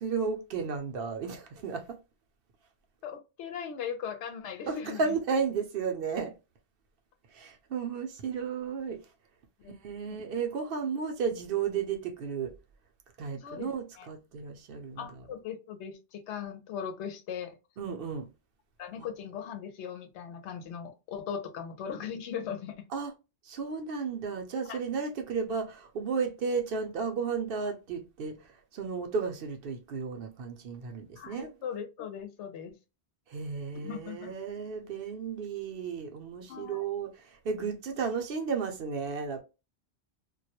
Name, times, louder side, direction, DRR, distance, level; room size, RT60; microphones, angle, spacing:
voice 1, 0.0-2.0 4.7-6.3 7.3-9.0 9.8-12.5 13.2-15.0 17.8-18.3 22.9-23.1 23.4-28.4 28.7-31.5 33.3-39.4, right 5 dB, 65° right, 0.7 m, -33 dB
voice 2, 3.0-5.0 9.6-9.8 10.1-10.2 13.4-14.1 15.0-17.6 18.8-22.8 24.6-24.8 31.2-32.8 33.7-34.3 36.5-36.8 37.9-38.0, left 7 dB, 90° left, 0.9 m, -39 dB
2.3 x 2.1 x 2.7 m
omnidirectional pair, 1.1 m